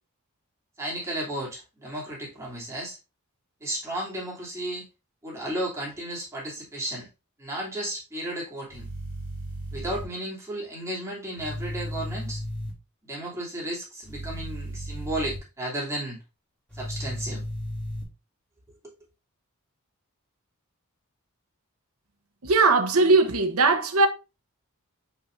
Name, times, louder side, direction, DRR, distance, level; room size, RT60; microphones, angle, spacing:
voice 1, 0.8-3.0 3.6-4.9 5.2-7.1 7.4-8.9 9.7-12.4 13.0-16.2 16.7-17.4, right 1 dB, 15° right, 2.9 m, -33 dB
sound 1, 8.7-10.0 11.4-12.7 14.0-15.4 16.7-18.0, equal, 5° left, 3.0 m, -35 dB
voice 2, 22.4-24.1, right 3 dB, 75° right, 1.0 m, -19 dB
7.0 x 5.5 x 2.6 m
head